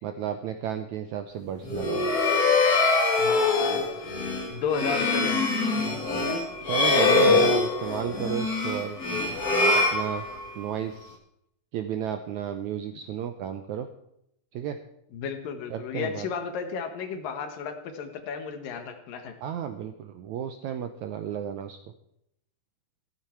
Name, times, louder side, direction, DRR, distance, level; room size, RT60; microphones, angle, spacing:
voice 1, 0.0-2.1 6.7-9.0 9.7-10.2 10.6-11.2 11.7-13.9 14.5-14.8 15.7-16.3 19.4-21.8, right 9 dB, 80° right, 8 dB, 1.7 m, -32 dB
sound 1, 1.6-10.7, left 3 dB, 40° left, 1.5 m, -24 dB
voice 2, 3.1-3.9 4.5-5.4 15.1-19.3, left 6 dB, 75° left, 6 dB, 2.9 m, -33 dB
14.0 x 14.0 x 4.5 m, 0.78 s
omnidirectional pair, 4.1 m